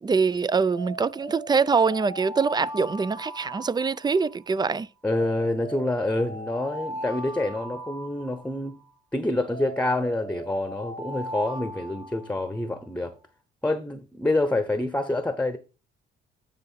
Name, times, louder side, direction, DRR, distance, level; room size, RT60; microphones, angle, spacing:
voice 1, 0.0-4.9, right 5 dB, 20° right, 0.4 m, -24 dB
Alarm, 0.7-4.4 5.1-8.8 9.5-12.7, right 1 dB, 65° right, 3.5 m, -38 dB
voice 2, 5.0-8.8 9.1-13.1 13.6-15.6, left 2 dB, 5° left, 0.9 m, -27 dB
9.4 x 3.7 x 5.7 m
cardioid pair, 90°, 20 cm